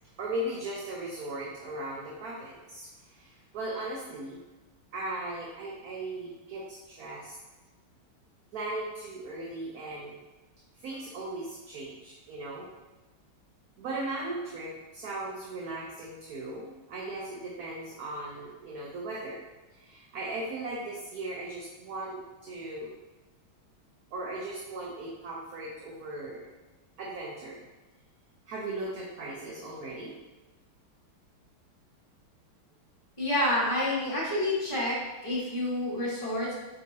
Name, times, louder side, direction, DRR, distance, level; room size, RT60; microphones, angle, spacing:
voice 1, 0.2-4.4 4.9-7.4 8.5-10.1 10.8-12.7 13.8-19.4 19.8-22.9 24.1-26.5 27.0-27.7 28.5-30.2, right 2 dB, 55° right, -3 dB, 1.1 m, -38 dB
voice 2, 33.2-35.0 35.2-36.5, left 1 dB, 15° left, -8 dB, 2.0 m, -28 dB
8.4 x 4.1 x 2.8 m, 1.1 s
omnidirectional pair, 2.3 m